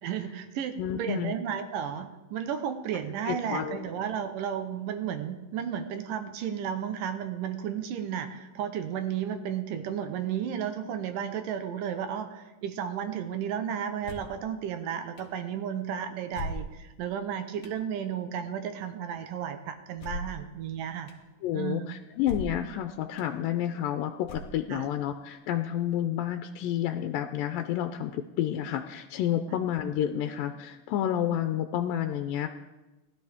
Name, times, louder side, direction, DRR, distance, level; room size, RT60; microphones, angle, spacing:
voice 1, 0.0-21.1 21.5-21.9 24.7-24.9, right 8 dB, 75° right, 8 dB, 2.5 m, -33 dB
voice 2, 0.8-1.3 3.3-3.9 21.4-32.5, left 10 dB, 85° left, 7 dB, 2.3 m, -30 dB
sound 1, 14.0-14.4 15.2-15.3 16.3-17.0 17.6-17.8 20.0-20.4 21.1-21.2 22.2-22.7 23.2-23.3 24.2-24.8, left 2 dB, 55° left, 1.7 m, -38 dB
19.5 x 12.5 x 3.6 m, 1.1 s
omnidirectional pair, 4.0 m